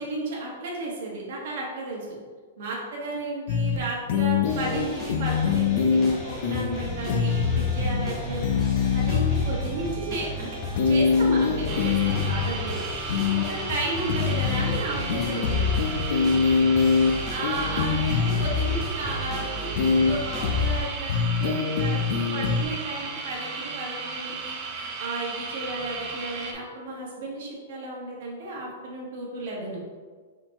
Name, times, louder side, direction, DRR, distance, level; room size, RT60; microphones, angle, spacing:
voice 1, 0.0-2.1 2.6-8.4 8.9-10.6 10.8-12.8 13.7-15.8 17.3-19.7 20.0-22.0 22.3-29.8, right 2 dB, 50° right, -3 dB, 1.3 m, -33 dB
sound 1, 3.5-3.8 4.1-4.8 5.1-6.1 6.4-6.8 7.1-8.1 8.4-9.4 10.8-12.4 13.1-13.4 14.1-14.8 15.1-17.1 17.4-18.8 19.7-20.1 20.4-20.8 21.1-22.6, left 6 dB, 50° left, 0.5 m, -23 dB
sound 2, 4.4-20.8, left 1 dB, 15° left, 0.9 m, -34 dB
sound 3, 11.7-26.5, right 4 dB, 25° right, 0.4 m, -35 dB
4.4 x 3.9 x 2.9 m, 1.5 s
supercardioid pair, 170°, 0 cm